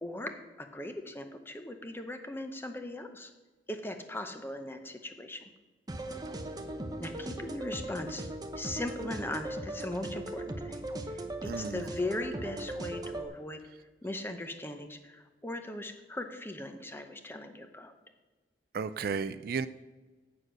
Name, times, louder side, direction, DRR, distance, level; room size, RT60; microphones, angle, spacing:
voice 1, 0.0-3.3 3.7-5.5 7.0-8.2 8.6-13.6 14.0-17.9, left 1 dB, 15° left, 7 dB, 0.7 m, -39 dB
sound 1, 5.9-13.3, right 1 dB, 20° right, 0.7 m, -38 dB
voice 2, 11.5-11.8 18.7-19.7, right 5 dB, 55° right, 13 dB, 0.3 m, -33 dB
8.1 x 6.5 x 6.2 m, 1.3 s
head